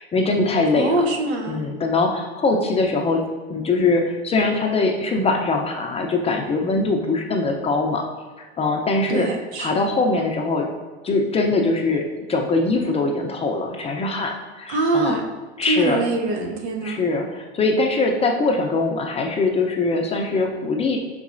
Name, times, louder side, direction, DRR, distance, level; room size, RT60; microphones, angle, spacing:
voice 1, 0.0-1.0 1.5-3.2 3.5-8.0 8.4-9.3 9.6-10.7 11.0-15.2 15.6-16.0 16.8-21.0, left 3 dB, 20° left, 2 dB, 0.5 m, -22 dB
voice 2, 0.7-1.6 9.1-9.8 14.7-15.2 15.7-17.0, right 2 dB, 80° right, 3 dB, 0.9 m, -24 dB
5.2 x 4.0 x 2.5 m, 1.4 s
hypercardioid pair, 110°, 32 cm